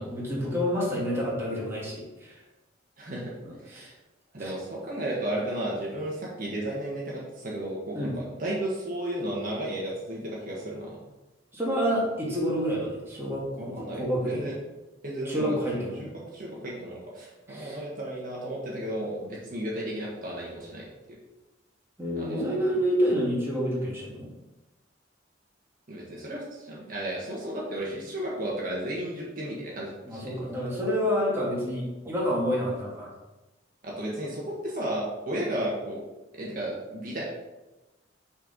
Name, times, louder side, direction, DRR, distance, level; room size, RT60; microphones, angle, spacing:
voice 1, 0.0-2.4 3.4-3.9 4.4-4.5 7.9-8.2 11.5-14.5 15.2-16.1 17.5-17.8 22.0-24.3 30.1-33.1, equal, 15° right, -6 dB, 2.1 m, -28 dB
voice 2, 3.0-3.3 3.6-3.9 4.3-11.0 13.6-14.5 15.0-15.5 16.0-20.8 22.2-22.6 25.9-30.3 33.8-36.0 36.4-37.2, right 1 dB, 45° right, -4 dB, 1.5 m, -33 dB
6.7 x 4.5 x 5.2 m, 1.1 s
head